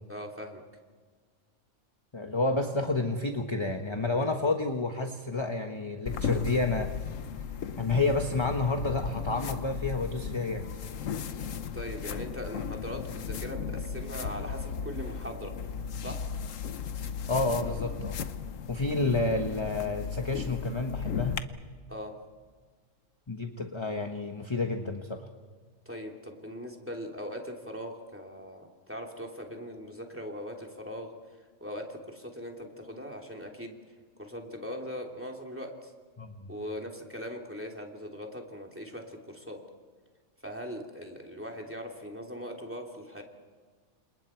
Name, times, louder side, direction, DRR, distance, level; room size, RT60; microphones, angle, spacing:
voice 1, 0.1-0.6 11.7-15.5 16.0-16.2 21.9-22.1 25.8-31.1 31.6-33.8 34.2-35.9 36.5-39.6 40.4-43.2, equal, 10° right, 1 dB, 3.2 m, -40 dB
voice 2, 2.1-6.9 7.8-10.7 17.3-18.2 18.7-21.4 23.3-25.3 36.2-36.5, left 3 dB, 25° left, 4 dB, 1.3 m, -30 dB
sound 1, 6.1-21.4, left 6 dB, 85° left, 1.3 m, -36 dB
29.5 x 27.5 x 4.6 m, 1.5 s
omnidirectional pair, 1.3 m